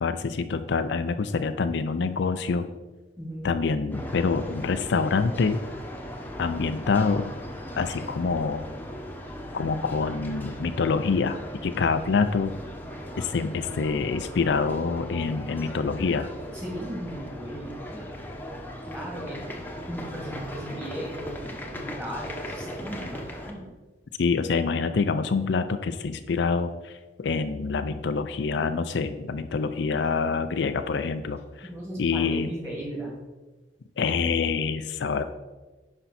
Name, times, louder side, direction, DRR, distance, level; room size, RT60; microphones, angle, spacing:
voice 1, 0.0-2.7 3.4-5.6 6.4-7.3 7.8-8.6 9.5-12.5 13.2-16.3 24.2-31.7 32.0-32.5 34.0-35.2, left 4 dB, 65° left, 10 dB, 0.4 m, -26 dB
voice 2, 3.2-3.5 16.5-18.3 18.8-19.6 19.9-23.7 31.6-33.1, right 1 dB, 15° right, -2 dB, 2.2 m, -37 dB
sound 1, 3.9-23.5, equal, 10° left, 0.9 m, -38 dB
10.0 x 5.3 x 4.2 m, 1.2 s
head